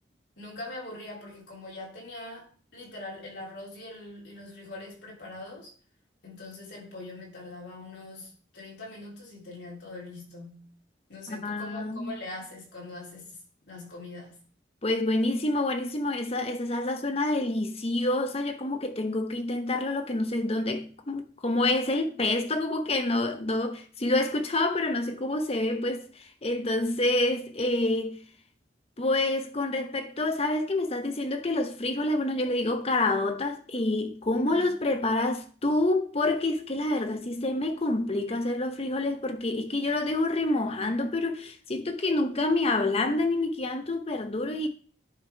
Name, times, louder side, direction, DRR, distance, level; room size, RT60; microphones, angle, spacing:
voice 1, 0.4-5.7 6.2-10.7 11.1-13.3 13.7-14.4 34.5-34.7, left 2 dB, 70° left, 3.5 m, -42 dB
voice 2, 11.3-12.2 14.8-28.2 29.0-44.7, left 2 dB, 35° left, 0.8 m, -27 dB
11.0 x 3.6 x 4.6 m
head